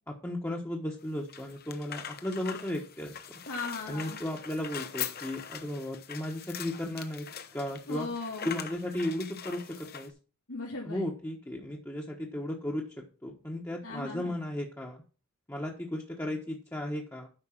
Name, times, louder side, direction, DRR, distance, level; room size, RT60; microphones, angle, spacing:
voice 1, 0.1-3.2 3.9-8.1 8.4-10.1 10.8-15.0 15.5-17.3, left 1 dB, 10° left, -2 dB, 1.2 m, -35 dB
sound 1, 1.0-10.1, left 8 dB, 45° left, 1.0 m, -42 dB
voice 2, 3.5-4.2 7.9-8.5 10.5-11.0 13.8-14.3, left 3 dB, 85° left, -4 dB, 2.7 m, -37 dB
8.8 x 5.6 x 5.8 m, 0.35 s
head